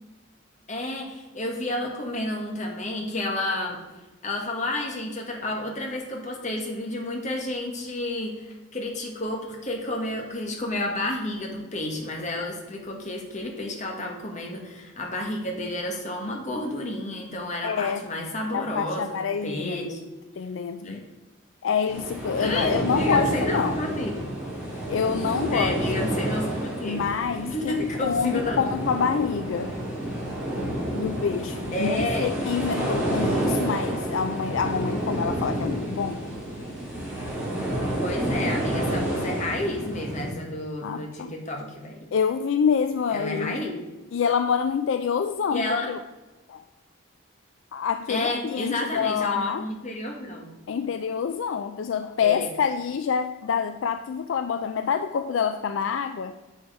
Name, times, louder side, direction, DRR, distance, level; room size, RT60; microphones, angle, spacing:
voice 1, 0.7-3.8 4.2-20.0 20.8-21.0 22.4-24.3 25.5-27.0 27.4-28.7 31.7-32.3 38.0-42.1 43.1-43.8 45.5-45.9 48.1-50.5 52.2-52.5, left 1 dB, 35° left, 1 dB, 1.4 m, -31 dB
voice 2, 17.6-18.0 18.5-19.9 20.4-21.0 21.6-23.8 24.9-26.2 26.8-29.7 31.0-36.2 40.8-41.3 42.1-43.6 44.1-46.0 46.5-46.6 47.7-49.7 50.7-56.3, left 6 dB, 65° left, 9 dB, 0.3 m, -27 dB
sound 1, 21.9-40.3, right 1 dB, 5° right, 3.1 m, -29 dB
7.3 x 6.3 x 4.8 m, 1.1 s
head